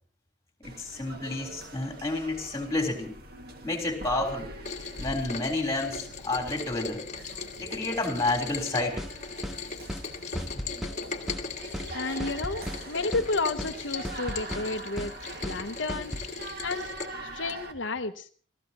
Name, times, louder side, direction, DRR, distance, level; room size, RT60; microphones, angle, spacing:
voice 1, 0.6-3.2 3.6-4.5 5.0-7.0 7.6-9.0, left 2 dB, 15° left, 1 dB, 3.7 m, -30 dB
sound 1, 0.6-17.7, right 2 dB, 55° right, 2.0 m, -44 dB
Rain, 4.6-17.1, left 4 dB, 40° left, 1.6 m, -39 dB
sound 2, 9.0-9.1 9.4-9.6 9.9-10.1 10.4-11.0 11.3-11.4 11.7-11.9 12.2-12.8 13.1-13.3 13.6-13.7 14.0-14.7 15.0-15.1 15.4-15.6 15.9-16.3, equal, ahead, 0.8 m, -35 dB
voice 2, 11.9-15.1 15.4-16.2 16.6-16.9 17.2-18.3, left 3 dB, 80° left, 6 dB, 0.9 m, -31 dB
29.5 x 15.0 x 3.0 m, 0.43 s
head